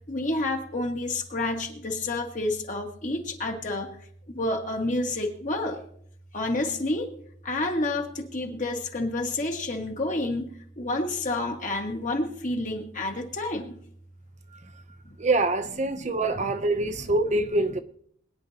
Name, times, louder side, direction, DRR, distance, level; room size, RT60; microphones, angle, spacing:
voice 1, 0.1-3.9 4.3-5.8 6.3-7.1 7.4-13.8 15.9-16.7, left 2 dB, 40° left, 1.7 m, -29 dB
voice 2, 15.2-17.8, right 2 dB, 35° right, 0.7 m, -25 dB
21.5 x 10.0 x 2.9 m
head